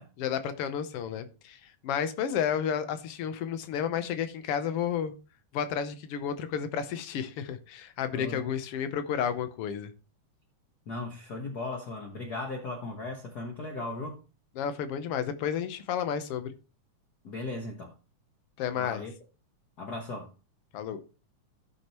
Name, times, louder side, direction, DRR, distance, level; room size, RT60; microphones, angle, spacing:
voice 1, 0.2-5.1 5.5-9.9 14.6-16.5 18.6-19.0 20.7-21.0, left 8 dB, 75° left, 1.3 m, -31 dB
voice 2, 8.1-8.4 10.9-14.3 17.2-17.9 18.7-19.1 19.8-20.3, left 2 dB, 60° left, 1.0 m, -37 dB
14.0 x 6.3 x 3.0 m
omnidirectional pair, 3.6 m